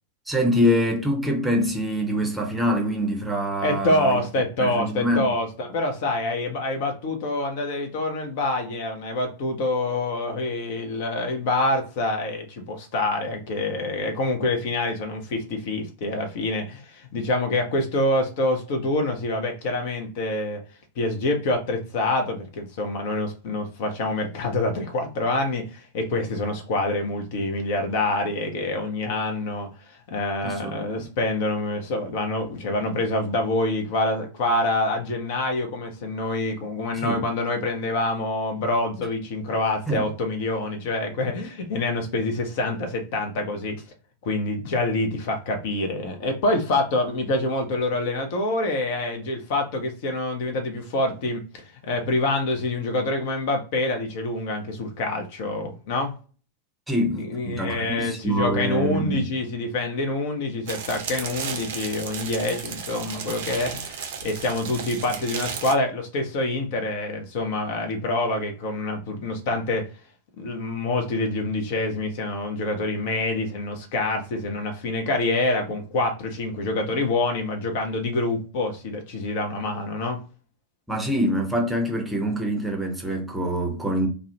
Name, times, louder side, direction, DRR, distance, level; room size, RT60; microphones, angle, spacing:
voice 1, 0.3-4.2 4.6-5.3 30.4-31.1 36.9-37.2 39.9-40.1 56.9-59.2 80.9-84.1, equal, 5° right, 0.6 m, -25 dB
voice 2, 3.6-20.6 21.0-43.8 44.2-56.1 57.1-69.8 70.4-80.2, left 2 dB, 50° left, 0.6 m, -26 dB
sound 1, 60.7-65.7, right 6 dB, 55° right, 0.5 m, -34 dB
2.4 x 2.0 x 2.7 m
figure-of-eight pair, 90°, 0 cm